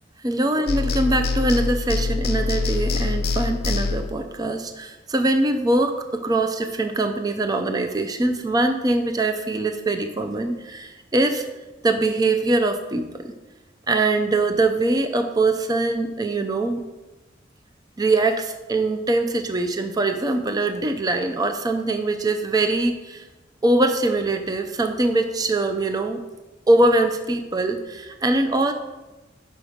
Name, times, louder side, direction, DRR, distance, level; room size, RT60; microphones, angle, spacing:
voice 1, 0.2-11.4 11.8-13.3 13.9-16.8 18.0-23.2 23.6-26.2 26.7-28.7, right 2 dB, 20° right, 6 dB, 0.5 m, -22 dB
sound 1, 0.7-4.2, left 3 dB, 55° left, 0.6 m, -24 dB
6.0 x 5.2 x 5.0 m, 1.1 s
head